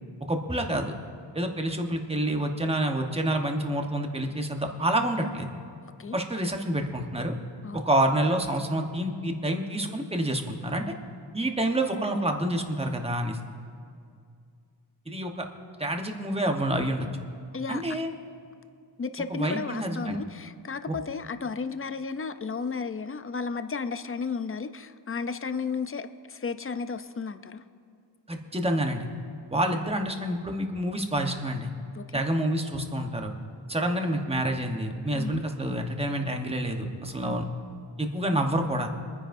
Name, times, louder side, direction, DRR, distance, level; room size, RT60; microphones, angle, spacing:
voice 1, 0.3-0.9 1.3-5.5 6.1-7.3 7.7-10.9 11.3-13.4 15.1-15.5 15.8-17.1 17.7-18.1 19.3-20.2 20.9-21.0 28.3-29.1 29.5-31.7 32.1-33.3 33.7-37.4 38.0-38.9, right 1 dB, 15° right, 3 dB, 1.1 m, -28 dB
voice 2, 5.8-6.2 7.6-7.9 17.5-17.8 19.0-27.6 31.9-32.2 35.1-35.4 37.2-37.4, left 5 dB, 30° left, 10 dB, 0.5 m, -33 dB
24.5 x 9.8 x 2.6 m, 2.3 s
wide cardioid pair, 85°, 46 cm